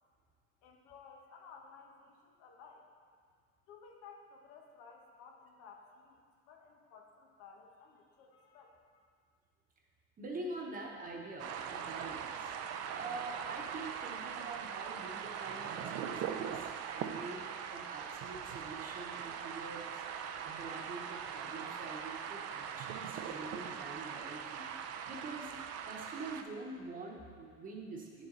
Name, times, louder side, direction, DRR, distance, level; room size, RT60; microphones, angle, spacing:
voice 1, 0.6-2.9 3.7-9.0, left 5 dB, 75° left, 1 dB, 1.2 m, -56 dB
voice 2, 10.2-16.7 17.0-17.4 17.7-20.0 20.4-24.7 25.0-25.5 25.8-28.3, right 3 dB, 25° right, 0 dB, 1.1 m, -45 dB
sound 1, 11.4-26.4, right 8 dB, 55° right, 0.5 m, -41 dB
8.8 x 7.3 x 3.9 m, 2.1 s
cardioid pair, 155°, 31 cm